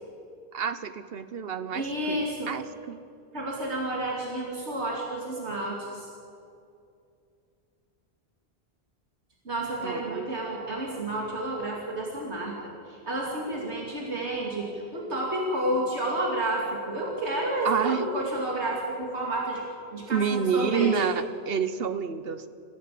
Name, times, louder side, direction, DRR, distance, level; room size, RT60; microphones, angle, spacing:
voice 1, 0.5-3.0 9.8-10.3 17.6-18.1 20.1-22.5, right 6 dB, 65° right, 12 dB, 1.2 m, -29 dB
voice 2, 1.7-2.5 3.3-6.1 9.4-12.5 12.9-19.6 19.9-20.9, right 1 dB, 80° right, -2 dB, 2.9 m, -30 dB
26.0 x 15.5 x 7.6 m, 2.5 s
omnidirectional pair, 1.1 m